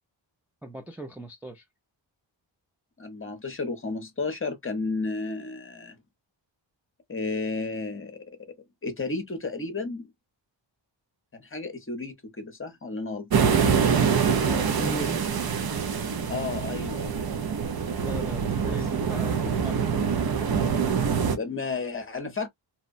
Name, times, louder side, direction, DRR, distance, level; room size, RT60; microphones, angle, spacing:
voice 1, 0.6-1.6 14.4-15.2 18.0-20.5, right 1 dB, 5° right, 0.4 m, -38 dB
voice 2, 3.0-6.0 7.1-8.2 8.8-10.1 11.3-13.5 16.3-17.3 18.5-18.8 21.3-22.5, left 3 dB, 25° left, 0.7 m, -32 dB
sound 1, 13.3-21.4, right 6 dB, 55° right, 0.6 m, -25 dB
2.8 x 2.1 x 2.4 m
wide cardioid pair, 150°, 46 cm